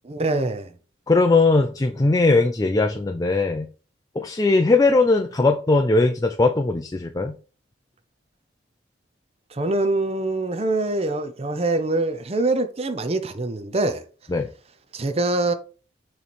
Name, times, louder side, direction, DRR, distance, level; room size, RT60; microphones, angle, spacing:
voice 1, 0.0-0.7 9.5-14.0 14.9-15.5, right 2 dB, 35° right, 0.6 m, -24 dB
voice 2, 1.1-3.7 4.2-7.4 14.3-14.5, left 3 dB, 20° left, 0.4 m, -19 dB
6.9 x 3.2 x 4.3 m
head